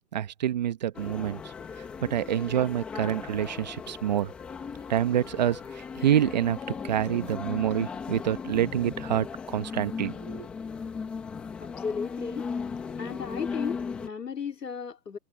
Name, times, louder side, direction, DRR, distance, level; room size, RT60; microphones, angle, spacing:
voice 1, 0.1-1.4 2.1-4.3 4.9-6.6 6.8-10.5, right 10 dB, 25° right, 1.1 m, -27 dB
sound 1, 0.9-14.1, left 5 dB, ahead, 0.8 m, -37 dB
voice 2, 11.6-12.5 13.0-15.2, left 6 dB, 75° left, 2.9 m, -35 dB
hypercardioid pair, 155°, 49 cm